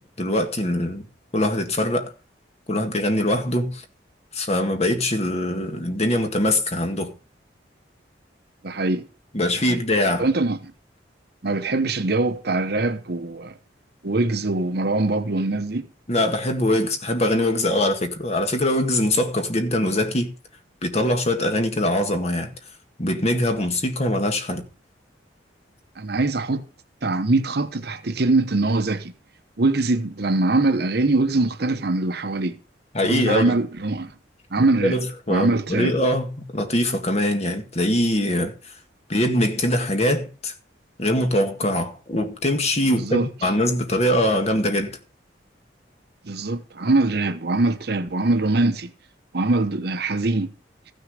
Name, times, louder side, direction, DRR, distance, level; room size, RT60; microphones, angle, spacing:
voice 1, 0.2-1.1 1.3-2.1 2.7-3.8 4.3-7.1 9.3-10.3 16.1-20.3 20.8-22.5 23.0-24.6 32.9-33.6 34.6-38.7 39.1-40.5 41.0-45.0, left 1 dB, 35° left, 1.9 m, -22 dB
voice 2, 8.6-9.0 9.7-9.8 10.2-10.7 11.4-13.5 14.0-15.9 26.0-26.6 27.0-29.1 29.6-32.6 33.0-34.1 34.5-35.0 35.3-35.9 42.9-43.3 46.2-48.9 49.3-50.5, right 2 dB, 60° right, 0.9 m, -22 dB
15.0 x 6.6 x 6.5 m
head